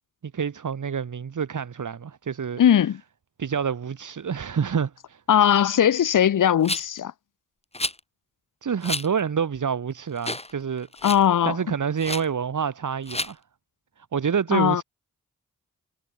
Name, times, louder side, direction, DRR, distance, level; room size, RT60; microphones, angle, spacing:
voice 1, 0.3-2.6 3.4-5.2 8.6-11.1 11.4-13.4 14.0-14.8, right 7 dB, 75° right, 6.9 m, -27 dB
voice 2, 2.6-3.0 5.3-7.1 11.0-11.6 14.5-14.8, left 9 dB, 85° left, 1.5 m, -19 dB
Rattle, 6.6-7.0 7.7-8.0 8.8-9.1 9.6-9.7 10.2-10.5 10.8-11.3 12.0-12.3 13.1-13.3, left 2 dB, 20° left, 3.5 m, -30 dB
cardioid pair, 50°, 31 cm